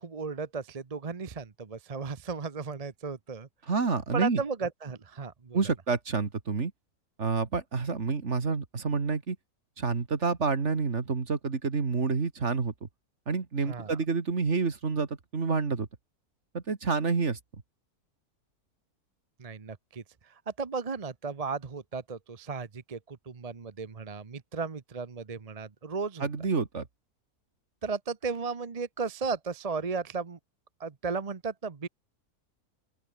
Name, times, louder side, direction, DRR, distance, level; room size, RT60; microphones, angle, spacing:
voice 1, 0.0-3.5 4.1-5.7 13.7-14.0 19.4-26.3 27.8-30.4 30.8-31.9, right 4 dB, 30° right, 0.9 m, -35 dB
voice 2, 3.7-4.4 5.5-6.7 7.2-9.4 9.8-12.9 13.3-15.9 16.5-17.4 26.2-26.9, right 4 dB, 50° right, 2.3 m, -28 dB
open air
omnidirectional pair, 1.6 m